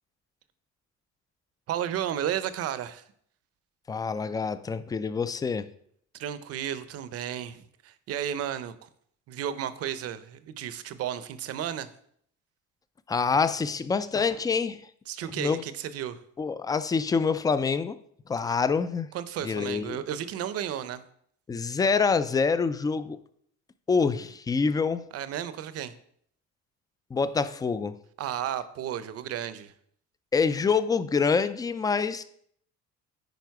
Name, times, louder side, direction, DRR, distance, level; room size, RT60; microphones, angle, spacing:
voice 1, 1.7-3.0 6.1-8.9 9.3-11.9 15.1-16.2 19.1-21.0 25.1-25.9 28.2-29.7, right 10 dB, 55° right, 13 dB, 0.7 m, -33 dB
voice 2, 3.9-5.7 13.1-14.8 15.3-15.6 16.4-18.0 18.3-19.1 19.4-20.0 21.5-23.2 23.9-25.1 27.1-28.0 30.3-32.2, left 5 dB, 15° left, 13 dB, 0.3 m, -26 dB
9.2 x 4.9 x 4.7 m, 0.65 s
cardioid pair, 140°, 29 cm